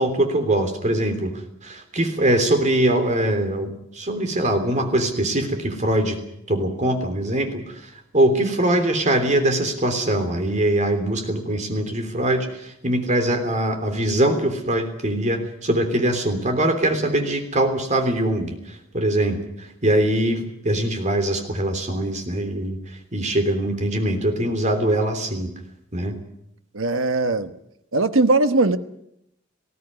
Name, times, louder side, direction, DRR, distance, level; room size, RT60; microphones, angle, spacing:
voice 1, 0.0-1.3 1.6-6.2 6.5-7.6 8.1-18.6 18.9-19.4 19.8-22.8 23.1-25.5 25.9-26.2, right 1 dB, 35° right, 3.4 m, -22 dB
voice 2, 26.7-27.5 27.9-28.8, right 2 dB, 85° right, 1.2 m, -19 dB
20.0 x 16.5 x 9.6 m
head